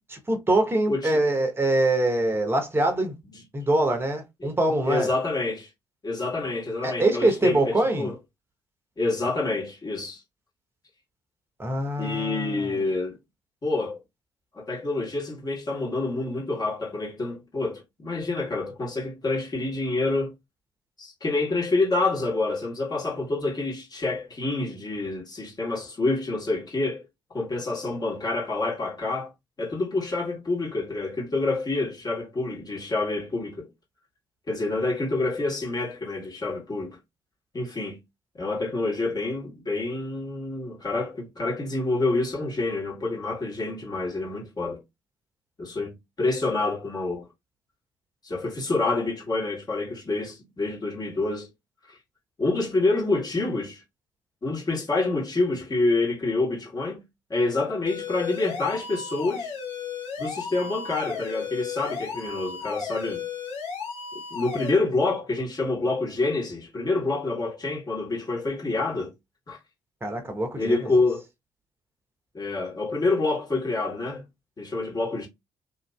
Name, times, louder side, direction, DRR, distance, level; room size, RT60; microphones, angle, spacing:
voice 1, 0.1-3.1 3.5-5.1 6.8-8.1 11.6-12.8 70.0-70.8, right 2 dB, 20° right, 0.8 m, -24 dB
voice 2, 0.9-1.2 4.4-4.5 4.8-5.7 6.0-8.1 9.0-10.2 12.0-13.2 13.6-14.0 14.5-20.3 21.0-27.0 27.3-29.3 29.6-33.7 34.5-37.0 37.5-38.0 38.4-44.8 45.6-47.3 48.2-51.5 52.4-53.8 54.4-57.0 57.3-59.5 60.2-63.2 64.3-69.1 69.5-69.6 70.6-71.2 72.3-74.2 74.6-75.3, left 2 dB, 30° left, 1.3 m, -27 dB
sound 1, 57.9-64.7, left 6 dB, 60° left, 0.9 m, -35 dB
2.7 x 2.5 x 2.2 m
figure-of-eight pair, 45°, 13 cm